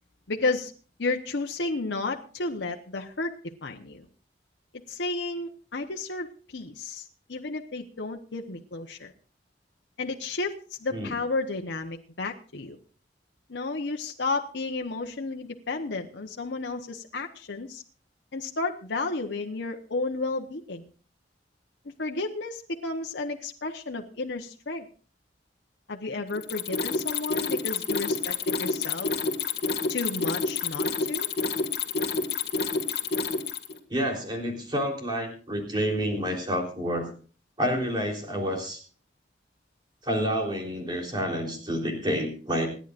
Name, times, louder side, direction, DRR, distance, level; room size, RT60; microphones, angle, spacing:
voice 1, 0.3-0.7 1.0-3.3 3.6-4.1 4.9-9.1 10.0-10.5 10.8-12.8 13.5-17.8 18.3-20.9 22.0-24.9 25.9-29.1 29.9-31.3, left 3 dB, 85° left, 2 dB, 1.0 m, -32 dB
Mechanisms, 26.3-33.8, left 4 dB, 60° left, 1.8 m, -28 dB
voice 2, 33.9-37.1 37.6-38.8 40.0-42.7, equal, 25° right, 1 dB, 3.7 m, -29 dB
27.0 x 10.5 x 2.5 m, 0.38 s
head